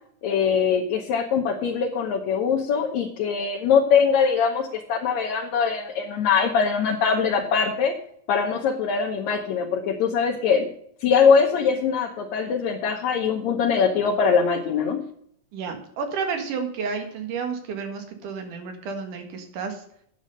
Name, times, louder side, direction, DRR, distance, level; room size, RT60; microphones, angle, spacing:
voice 1, 0.2-7.9 8.3-10.7 11.0-15.0, left 6 dB, 70° left, 1 dB, 2.2 m, -22 dB
voice 2, 15.5-19.8, right 5 dB, 85° right, 5 dB, 3.2 m, -31 dB
9.4 x 7.0 x 6.4 m, 0.67 s
omnidirectional pair, 3.6 m